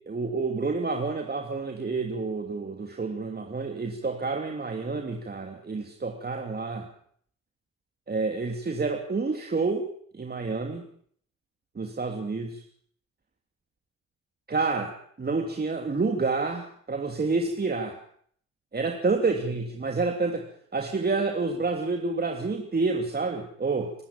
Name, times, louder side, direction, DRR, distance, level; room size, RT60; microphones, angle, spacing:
voice 1, 0.0-6.9 8.1-9.9 10.1-10.8 11.7-12.6 14.5-18.0 18.7-20.4 20.7-23.9, right 3 dB, 30° right, 4 dB, 3.1 m, -29 dB
26.5 x 13.0 x 8.7 m, 0.63 s
supercardioid pair, 60°, 31 cm